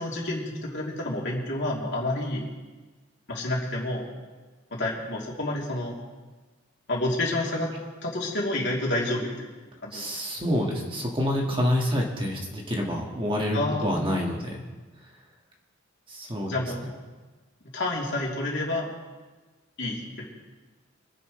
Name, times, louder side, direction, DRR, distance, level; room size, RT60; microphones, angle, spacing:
voice 1, 0.0-2.5 3.3-4.1 4.7-5.9 6.9-7.7 8.0-9.5 9.8-10.0 13.5-14.0 16.5-16.8 17.7-18.9 19.8-20.2, left 1 dB, 55° left, -3 dB, 3.3 m, -29 dB
voice 2, 9.9-14.6 16.1-16.5, equal, 25° right, -1 dB, 1.9 m, -27 dB
25.5 x 10.5 x 3.3 m, 1.3 s
head